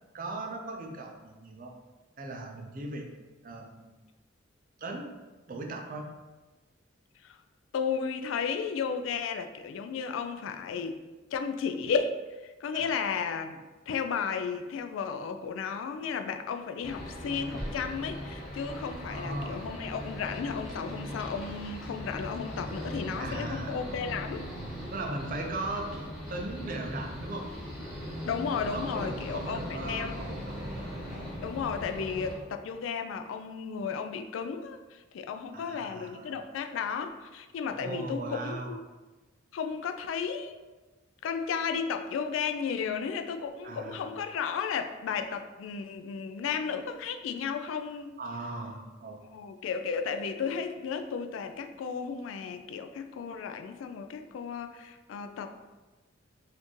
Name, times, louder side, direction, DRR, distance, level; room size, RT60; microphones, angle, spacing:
voice 1, 0.1-1.7 2.2-3.1 3.4-3.9 4.8-5.1 5.5-6.0 12.7-13.0 19.1-19.6 23.2-23.7 24.9-26.0 26.3-27.5 28.6-31.1 35.5-36.4 37.6-38.7 43.6-44.1 48.2-49.3, right 2 dB, 45° right, 2 dB, 0.5 m, -38 dB
voice 2, 7.7-11.0 11.3-24.5 28.2-30.1 31.4-38.8 39.5-40.6 41.2-48.1 49.3-55.5, left 6 dB, 75° left, 7 dB, 0.3 m, -34 dB
sound 1, 16.8-32.4, equal, ahead, 1.0 m, -39 dB
4.1 x 2.6 x 3.0 m, 1.2 s
head